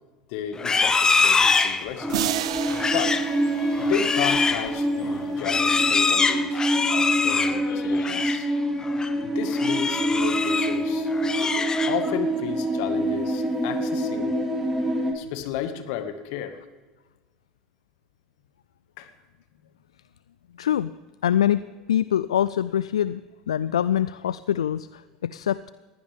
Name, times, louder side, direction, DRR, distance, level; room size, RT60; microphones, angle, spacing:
voice 1, 0.3-2.2 2.9-3.2 3.8-8.5 9.2-11.2 11.9-14.3 15.1-16.6 19.0-19.1, left 9 dB, 65° left, 9 dB, 1.8 m, -33 dB
Livestock farm animals working animals, 0.5-8.5 8.8-9.1 9.5-10.8 11.1-12.2, left 4 dB, 20° left, 1.1 m, -24 dB
sound 1, 2.0-15.1, right 1 dB, 15° right, 4.3 m, -26 dB
sound 2, 2.1-4.6, right 11 dB, 80° right, 0.7 m, -32 dB
voice 2, 3.6-3.9 20.6-20.9 21.2-21.6 21.9-23.2 23.5-25.7, left 10 dB, 85° left, 17 dB, 0.3 m, -24 dB
20.5 x 16.0 x 3.6 m, 1.3 s
hypercardioid pair, 80°, 3 cm